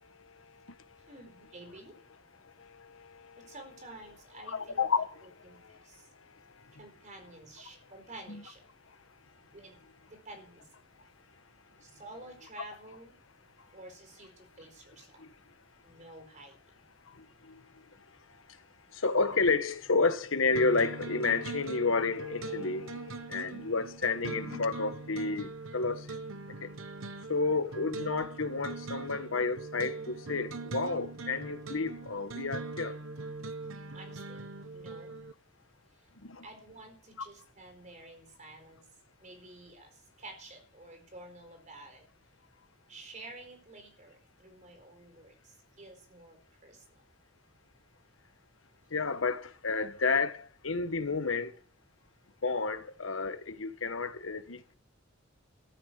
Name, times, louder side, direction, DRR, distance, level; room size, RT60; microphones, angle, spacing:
voice 1, 0.2-1.1 2.6-3.5 4.3-5.8 8.3-8.4 15.2-15.3 17.1-17.6 18.9-26.2 26.6-26.7 27.3-33.0 36.2-36.5 48.9-51.5 52.4-54.7, left 4 dB, 80° left, 1.3 m, -31 dB
voice 2, 1.1-2.0 3.4-4.8 5.4-6.0 6.8-8.6 9.5-9.8 10.1-10.6 11.8-13.1 13.7-15.2 15.8-16.6 27.3-27.5 33.9-35.1 36.4-38.8 39.2-39.9 40.2-42.1 42.9-47.0, right 2 dB, 40° right, 4.5 m, -50 dB
sound 1, 20.6-35.3, right 3 dB, 90° right, 1.1 m, -41 dB
14.0 x 7.5 x 8.1 m
head